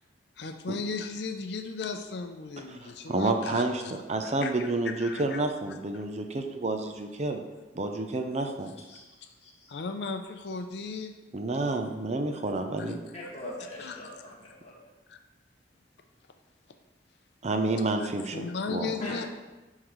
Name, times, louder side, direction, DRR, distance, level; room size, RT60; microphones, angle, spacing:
voice 1, 0.4-3.9 4.2-6.1 9.2-9.3 9.7-11.2 12.3-12.4 12.8-13.3 13.8-14.0 15.1-15.2 18.0-19.2, left 4 dB, 65° left, 6 dB, 0.5 m, -37 dB
voice 2, 3.1-7.4 7.7-8.7 11.3-13.0 17.4-18.9, right 2 dB, 40° right, 5 dB, 0.6 m, -29 dB
voice 3, 9.4-9.7 13.1-14.3 14.6-14.8 17.6-17.7 19.0-19.3, left 1 dB, 35° left, -5 dB, 1.8 m, -41 dB
11.0 x 3.7 x 3.1 m, 1.1 s
head